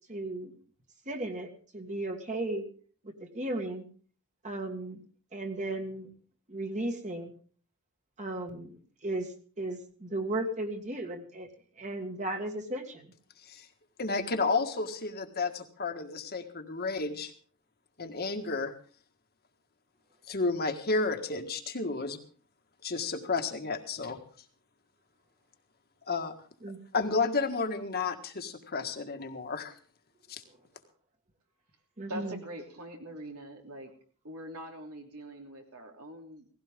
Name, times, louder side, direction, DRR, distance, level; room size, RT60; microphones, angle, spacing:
voice 1, 0.1-0.6 1.1-2.7 3.0-3.9 4.4-5.0 5.3-6.1 6.5-7.4 8.2-11.5 11.8-13.1 26.6-26.8 32.0-32.4, right 1 dB, 35° right, 4 dB, 1.9 m, -35 dB
voice 2, 14.0-17.3 18.0-18.7 20.3-22.2 22.8-24.2 26.1-26.3 26.9-29.7 30.3-30.4, left 3 dB, 45° left, 6 dB, 1.7 m, -31 dB
voice 3, 32.1-33.9 34.2-36.5, right 1 dB, 85° right, 2 dB, 3.1 m, -43 dB
17.5 x 16.0 x 3.7 m, 0.43 s
head